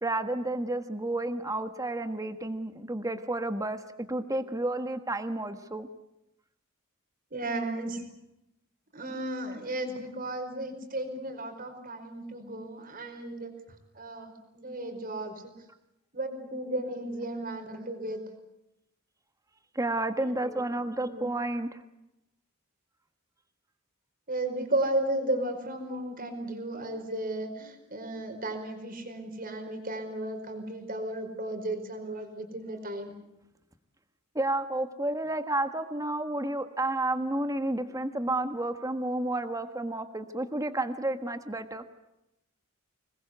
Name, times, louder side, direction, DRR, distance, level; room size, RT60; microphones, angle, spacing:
voice 1, 0.0-3.8 4.1-5.9 19.7-21.8 34.3-41.8, right 2 dB, 15° right, 8 dB, 1.5 m, -31 dB
voice 2, 7.3-8.0 8.9-15.5 16.1-18.2 20.2-20.6 21.0-21.3 24.3-33.1, right 1 dB, 40° right, 6 dB, 4.9 m, -34 dB
26.5 x 21.0 x 8.1 m, 0.87 s
head